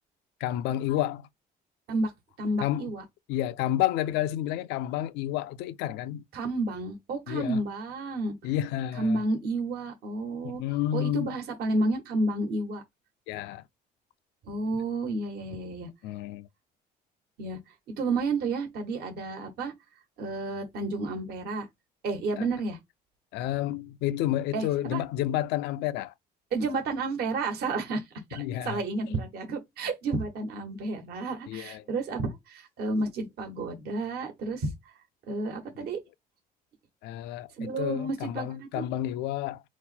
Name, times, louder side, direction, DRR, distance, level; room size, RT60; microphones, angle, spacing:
voice 1, 0.4-1.3 2.6-2.9 3.3-6.2 7.3-7.6 8.4-9.2 10.4-11.4 13.3-13.6 16.0-16.5 22.4-22.5 23.3-26.1 28.3-28.8 31.5-31.8 35.8-35.9 37.0-39.6, left 12 dB, 90° left, 0.4 m, -30 dB
voice 2, 2.4-3.0 6.3-8.3 9.0-10.6 10.9-12.8 14.5-15.9 17.4-17.6 18.0-19.7 20.2-21.7 22.0-22.8 24.5-25.0 26.5-34.7 35.3-36.0 37.6-38.9, right 2 dB, 70° right, 1.3 m, -31 dB
4.0 x 2.1 x 4.2 m
cardioid pair, 110°, 17 cm